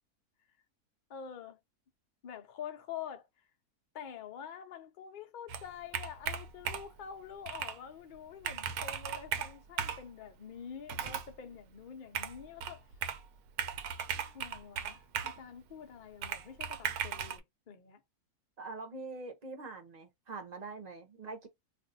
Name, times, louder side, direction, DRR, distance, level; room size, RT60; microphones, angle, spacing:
voice 1, 1.1-1.6 2.2-3.3 3.9-12.8 14.2-18.0, left 8 dB, 85° left, 0.4 m, -46 dB
Computer keyboard, 5.5-7.0 7.5-7.8 8.1-8.2 8.4-10.1 10.9-11.3 12.1-13.3 13.6-15.4 16.2-17.4, right 8 dB, 80° right, 1.1 m, -37 dB
voice 2, 18.6-21.5, right 3 dB, 40° right, 0.7 m, -44 dB
2.6 x 2.3 x 3.9 m
omnidirectional pair, 1.7 m